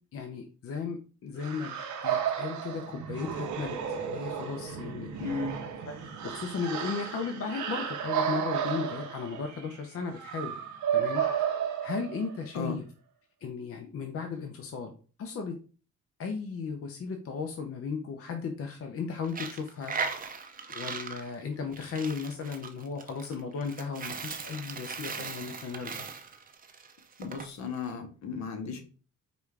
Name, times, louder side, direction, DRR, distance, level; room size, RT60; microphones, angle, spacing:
voice 1, 0.1-1.8 2.0-5.4 5.9-10.6 10.9-12.8 13.4-14.9 15.2-15.6 16.2-20.0 20.7-26.1, left 5 dB, 50° left, 4 dB, 0.7 m, -36 dB
sound 1, 1.4-12.5, right 8 dB, 70° right, 0.8 m, -33 dB
voice 2, 5.2-5.6 12.5-12.8 27.2-28.8, left 4 dB, 65° left, 6 dB, 1.0 m, -35 dB
Coin (dropping), 19.2-27.5, right 5 dB, 30° right, 0.6 m, -38 dB
5.0 x 2.4 x 3.3 m, 0.38 s
cardioid pair, 90°, 30 cm